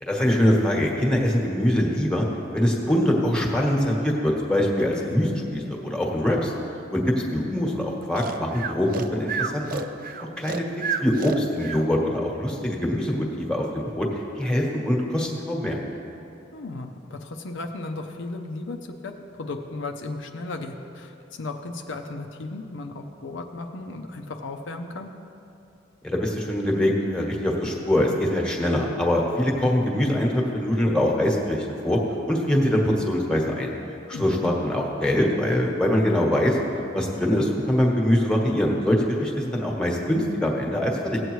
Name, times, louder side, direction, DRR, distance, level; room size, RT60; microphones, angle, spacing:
voice 1, 0.0-2.2 2.5-6.5 6.9-7.0 7.3-9.8 10.2-10.6 11.0-14.1 14.4-15.8 26.0-32.0 32.3-33.7 34.1-36.6 36.9-41.2, left 1 dB, 5° left, -1 dB, 1.2 m, -23 dB
Breathing, 8.2-11.9, right 5 dB, 45° right, 0.4 m, -30 dB
voice 2, 16.5-25.1 34.1-34.5, left 2 dB, 65° left, 4 dB, 0.6 m, -35 dB
16.0 x 8.0 x 3.1 m, 2.7 s
head